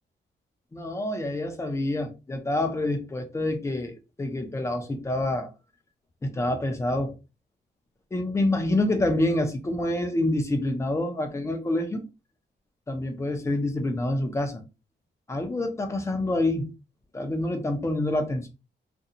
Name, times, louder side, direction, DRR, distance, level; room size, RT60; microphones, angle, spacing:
voice 1, 0.7-5.5 6.2-7.1 8.1-12.0 12.9-14.6 15.3-16.7 17.1-18.5, left 1 dB, 15° left, 0.5 m, -27 dB
2.5 x 2.2 x 2.7 m
wide cardioid pair, 145°, 19 cm